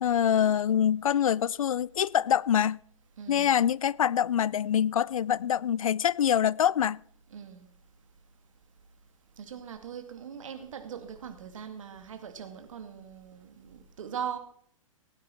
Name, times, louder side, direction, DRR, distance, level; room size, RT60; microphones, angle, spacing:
voice 1, 0.0-2.8 3.3-7.0, left 9 dB, 75° left, 0.4 m, -25 dB
voice 2, 3.2-3.6 7.3-7.7 9.4-14.4, right 8 dB, 65° right, 2.2 m, -40 dB
17.0 x 9.7 x 4.5 m
figure-of-eight pair, 120°, 18 cm